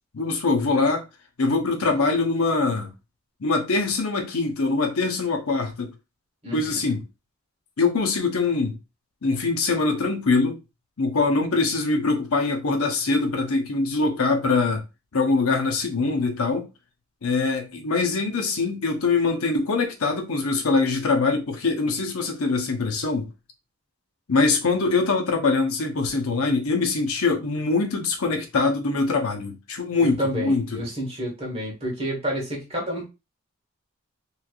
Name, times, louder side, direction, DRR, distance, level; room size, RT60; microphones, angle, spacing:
voice 1, 0.1-1.0 1.4-2.9 3.4-5.9 6.5-7.0 7.8-8.8 9.2-10.6 11.0-14.8 15.1-16.7 17.2-23.3 24.3-30.8, left 3 dB, 90° left, 0.8 m, -23 dB
voice 2, 6.4-6.8 30.0-33.1, equal, 25° right, 1.4 m, -29 dB
3.2 x 3.1 x 2.4 m
head